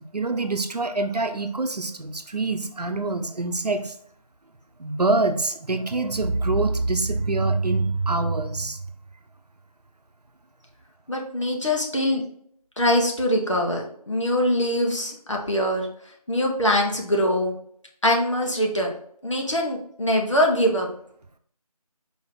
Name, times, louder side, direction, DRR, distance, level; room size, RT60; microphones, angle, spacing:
voice 1, 0.1-3.9 4.8-8.8, right 3 dB, 80° right, 7 dB, 0.7 m, -25 dB
voice 2, 11.1-12.2 12.8-15.9 16.3-17.5 18.0-18.9 19.2-20.9, equal, 50° left, 0 dB, 1.1 m, -23 dB
4.6 x 2.9 x 3.6 m, 0.65 s
figure-of-eight pair, 170°, 20 cm